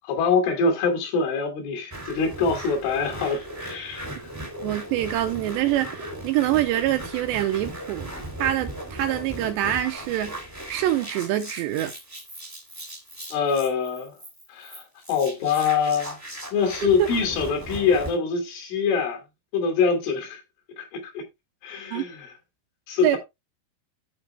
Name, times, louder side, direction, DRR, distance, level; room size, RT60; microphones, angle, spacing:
voice 1, 0.0-4.1 13.3-14.1 14.5-14.8 15.1-16.2 16.5-19.2 19.5-20.4 20.8-21.2 21.6-22.3 22.9-23.2, left 5 dB, 75° left, 5.2 m, -24 dB
sound 1, 1.9-18.2, right 1 dB, 20° right, 0.4 m, -38 dB
voice 2, 4.6-8.1 8.4-10.4 10.7-11.9 16.8-17.1 21.9-22.1 23.0-23.2, right 13 dB, 80° right, 2.7 m, -25 dB
13.5 x 4.9 x 3.3 m
omnidirectional pair, 5.6 m